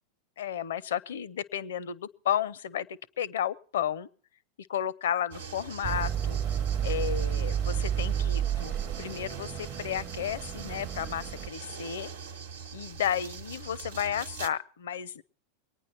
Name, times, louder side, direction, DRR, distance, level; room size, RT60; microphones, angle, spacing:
voice 1, 0.4-2.9 3.2-4.1 4.7-6.4 6.8-12.1 12.7-15.2, left 9 dB, 70° left, 21 dB, 0.6 m, -33 dB
sound 1, 5.3-14.5, right 6 dB, 80° right, 1.0 m, -43 dB
sound 2, 5.8-11.5, right 9 dB, 40° right, 0.7 m, -31 dB
23.5 x 9.6 x 4.3 m, 0.41 s
figure-of-eight pair, 90°, 0 cm